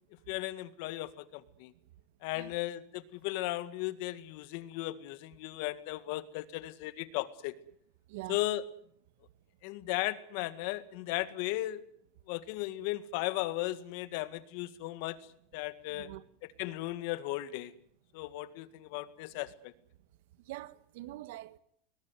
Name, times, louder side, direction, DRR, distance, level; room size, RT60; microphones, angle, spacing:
voice 1, 0.3-1.7 2.2-7.5 8.3-8.6 9.6-11.8 12.3-15.2 15.5-16.1 16.6-17.7 18.1-19.7, left 17 dB, 65° left, 1.8 m, -36 dB
voice 2, 8.1-8.4 15.9-16.2 20.5-21.6, right 17 dB, 75° right, 1.5 m, -44 dB
21.0 x 21.0 x 9.6 m
supercardioid pair, 140°, 0 cm